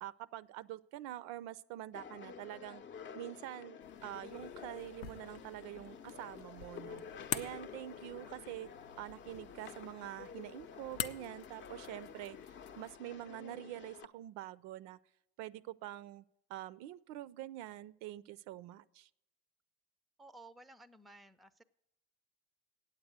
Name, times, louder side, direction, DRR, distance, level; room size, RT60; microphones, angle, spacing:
voice 1, 0.0-2.8 3.1-3.8 4.0-7.0 7.3-8.7 9.0-12.4 12.8-15.0 15.4-16.2 16.5-19.1, right 14 dB, 65° right, 18 dB, 0.5 m, -46 dB
sound 1, 1.9-14.1, left 6 dB, 40° left, 0.6 m, -51 dB
sound 2, 3.8-13.0, left 10 dB, 85° left, 0.6 m, -47 dB
voice 2, 20.2-21.6, right 2 dB, ahead, 14 dB, 0.4 m, -56 dB
8.8 x 8.1 x 7.9 m, 0.80 s
supercardioid pair, 80°, 30 cm